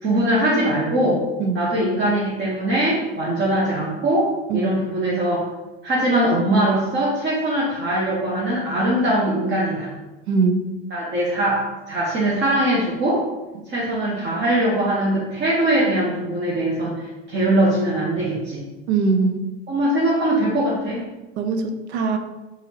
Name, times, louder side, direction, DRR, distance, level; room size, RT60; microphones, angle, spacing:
voice 1, 0.0-1.2 1.5-5.5 5.8-9.9 10.9-13.2 13.7-18.6 19.7-21.0, right 1 dB, 35° right, -6 dB, 1.0 m, -21 dB
voice 2, 10.3-10.6 18.9-19.4 21.4-22.2, right 4 dB, 85° right, 7 dB, 0.5 m, -21 dB
4.7 x 2.7 x 3.2 m, 1.1 s
hypercardioid pair, 90°, 32 cm